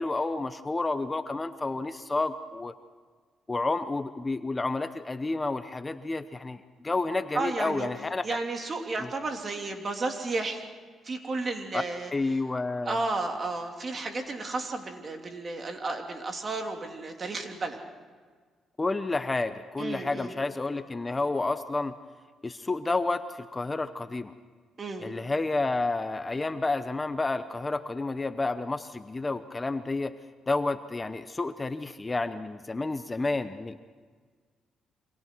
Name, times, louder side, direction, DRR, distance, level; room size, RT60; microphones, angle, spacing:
voice 1, 0.0-2.7 3.5-8.4 9.0-9.1 11.7-11.8 12.1-13.0 18.8-21.9 22.4-24.3 25.0-30.1 30.5-33.8, left 3 dB, 20° left, 10 dB, 0.9 m, -30 dB
voice 2, 7.3-7.9 8.2-10.7 11.0-12.4 12.8-17.8 19.8-20.4 24.8-25.1, right 3 dB, 40° right, 3 dB, 3.1 m, -33 dB
29.0 x 25.0 x 4.7 m, 1.5 s
cardioid pair, 90°, 0 cm